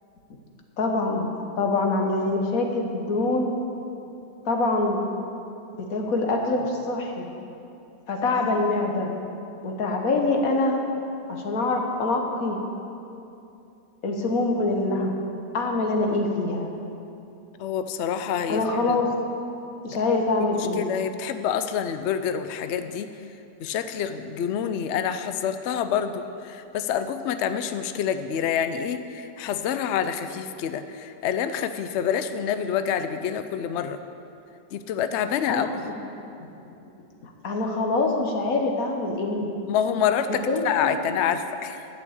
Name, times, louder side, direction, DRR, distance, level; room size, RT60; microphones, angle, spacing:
voice 1, 0.8-1.3 1.6-3.5 4.5-5.0 5.8-7.3 8.1-9.1 9.6-10.8 11.3-12.6 14.0-15.2 15.5-16.7 18.5-19.1 19.8-20.9 35.5-35.7 37.2-39.5 40.5-40.9, left 2 dB, 55° left, 2 dB, 1.6 m, -25 dB
voice 2, 17.6-19.0 20.6-23.1 23.6-34.0 34.7-35.9 39.7-41.9, left 8 dB, 85° left, 10 dB, 0.6 m, -27 dB
11.5 x 6.1 x 8.6 m, 2.8 s
omnidirectional pair, 1.8 m